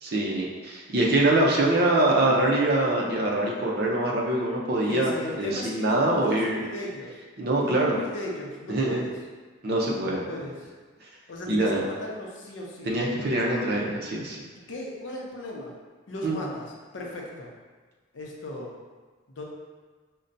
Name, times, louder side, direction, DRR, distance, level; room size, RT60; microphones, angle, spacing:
voice 1, 0.0-6.6 7.4-8.0 8.7-9.0 9.6-10.2 11.5-11.8 12.9-14.4 16.2-16.4, right 1 dB, 50° right, -2 dB, 0.6 m, -24 dB
voice 2, 4.9-7.1 7.6-9.1 10.1-10.7 11.3-12.9 14.5-15.7 16.1-17.5 18.1-18.8 19.3-19.4, left 1 dB, 65° left, -2 dB, 0.6 m, -36 dB
5.3 x 2.2 x 2.6 m, 1.4 s
head